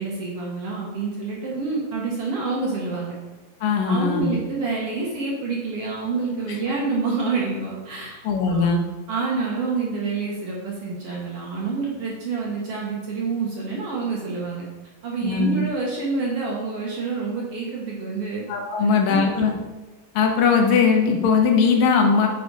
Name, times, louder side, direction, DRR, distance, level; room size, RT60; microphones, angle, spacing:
voice 1, 0.0-3.1 3.9-8.7 9.1-14.6 15.0-18.4 18.8-19.5, right 4 dB, 55° right, -3 dB, 2.0 m, -28 dB
voice 2, 3.6-4.3 8.2-8.8 15.2-15.6 18.5-19.5 20.1-22.3, left 5 dB, 80° left, 2 dB, 2.6 m, -19 dB
9.0 x 5.3 x 4.8 m, 1.1 s
omnidirectional pair, 3.9 m